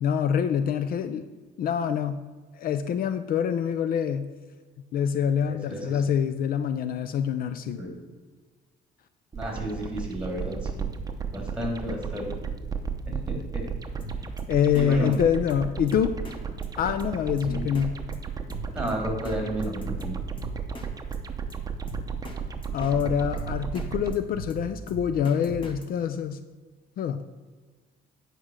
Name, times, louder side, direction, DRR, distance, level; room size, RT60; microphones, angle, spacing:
voice 1, 0.0-1.2 1.6-2.2 2.5-4.3 4.9-7.8 14.5-16.2 16.8-18.0 22.7-26.4 27.0-27.2, left 8 dB, 60° left, 11 dB, 0.5 m, -25 dB
voice 2, 5.4-6.0 7.7-8.0 9.3-10.9 11.3-12.3 13.1-13.7 14.7-15.1 17.4-17.8 18.7-20.2, equal, 5° right, 0 dB, 3.1 m, -33 dB
sound 1, 9.3-24.2, right 6 dB, 20° right, 0.8 m, -34 dB
Drum kit, 14.0-14.4 14.8-14.9 15.1-15.2 15.5-15.6 15.9-16.4 16.6-16.7 17.0-17.1 17.4-17.9 18.1-18.2 18.5-19.4 19.6-20.9 21.1-21.2 21.5-21.6 21.9-22.4 22.6-23.9 24.1-25.9, equal, 30° left, 1.4 m, -39 dB
9.3 x 5.0 x 6.4 m, 1.4 s
cardioid pair, 110°, 17 cm